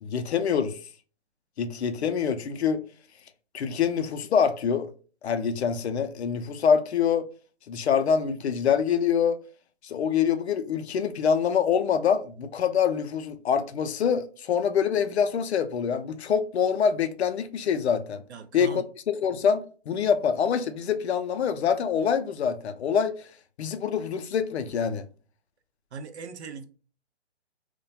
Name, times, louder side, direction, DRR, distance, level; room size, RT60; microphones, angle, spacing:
voice 1, 0.0-0.8 1.6-2.8 3.5-4.9 5.2-7.3 7.7-9.4 9.8-18.2 18.5-18.8 19.1-23.2 23.6-25.0, left 7 dB, 70° left, 0.5 m, -25 dB
voice 2, 18.3-18.9 25.9-26.6, right 5 dB, 75° right, 0.5 m, -39 dB
2.3 x 2.1 x 2.6 m
hypercardioid pair, 145°, 34 cm